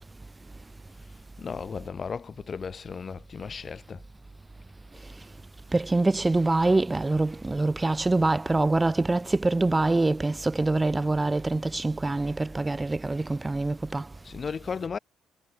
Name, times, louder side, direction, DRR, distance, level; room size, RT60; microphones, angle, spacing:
voice 1, 1.4-4.0 14.2-15.0, left 5 dB, 40° left, 2.5 m, -35 dB
voice 2, 5.7-14.0, right 2 dB, 20° right, 0.7 m, -25 dB
supercardioid pair, 60°, 0 cm